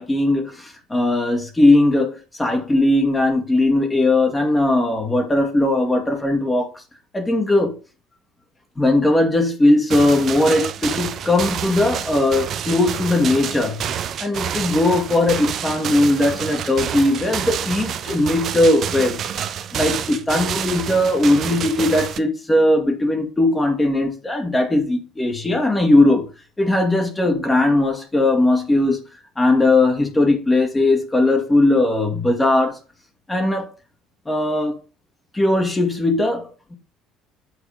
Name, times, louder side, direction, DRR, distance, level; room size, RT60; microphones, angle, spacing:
voice 1, 0.0-6.7 7.1-7.8 8.8-13.8 14.2-19.2 19.7-26.3 26.6-29.0 29.4-32.8 33.3-33.7 34.3-34.7 35.3-36.7, left 2 dB, 15° left, 2.0 m, -19 dB
sound 1, 9.9-22.2, right 9 dB, 45° right, 0.7 m, -28 dB
8.3 x 4.8 x 5.1 m
figure-of-eight pair, 55°, 0 cm